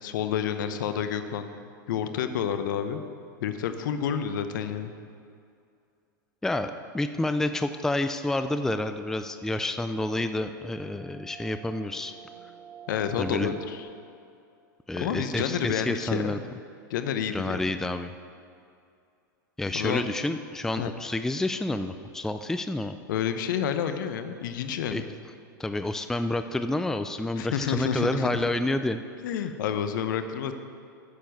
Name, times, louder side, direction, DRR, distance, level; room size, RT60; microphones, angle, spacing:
voice 1, 0.0-1.5 1.9-3.0 3.4-4.9 12.9-13.9 15.0-16.4 16.9-17.6 19.7-20.1 20.8-20.9 23.1-25.1 27.4-28.3 29.2-30.5, left 8 dB, 65° left, 9 dB, 0.9 m, -29 dB
voice 2, 6.4-12.1 13.2-13.5 14.9-16.4 17.3-18.1 19.6-22.9 24.9-25.0 25.6-29.0, left 2 dB, 5° left, 9 dB, 0.4 m, -29 dB
sound 1, 8.6-13.8, right 9 dB, 45° right, 1.9 m, -49 dB
9.7 x 7.0 x 7.8 m, 2.4 s
hypercardioid pair, 105°, 11 cm